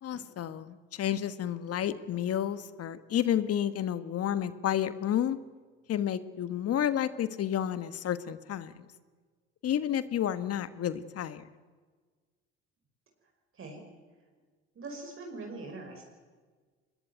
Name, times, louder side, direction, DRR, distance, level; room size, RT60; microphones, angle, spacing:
voice 1, 0.0-5.4 5.9-8.9 9.6-11.5, left 10 dB, 50° left, 13 dB, 1.4 m, -31 dB
voice 2, 14.8-16.0, right 3 dB, 45° right, 2 dB, 5.5 m, -42 dB
22.0 x 20.5 x 9.3 m, 1.5 s
hypercardioid pair, 65°, 30 cm